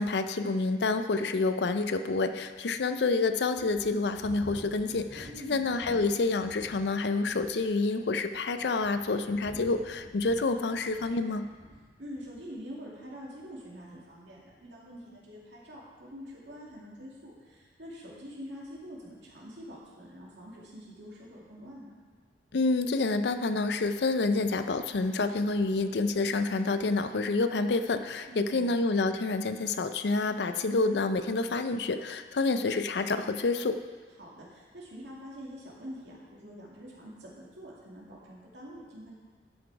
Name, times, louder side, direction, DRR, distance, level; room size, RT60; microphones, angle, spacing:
voice 1, 0.0-11.5 22.5-33.8, left 3 dB, 70° left, 9 dB, 0.5 m, -28 dB
sound 1, 1.4-1.5 2.1-2.2 2.8-2.9 3.5-6.9 7.2-7.7 8.4-11.9 12.1-12.5, equal, 40° right, 1.6 m, -49 dB
voice 2, 5.2-6.0 12.0-21.9 28.3-28.8 34.2-39.1, equal, 85° right, -4 dB, 2.4 m, -45 dB
11.0 x 6.2 x 4.7 m, 1.5 s
head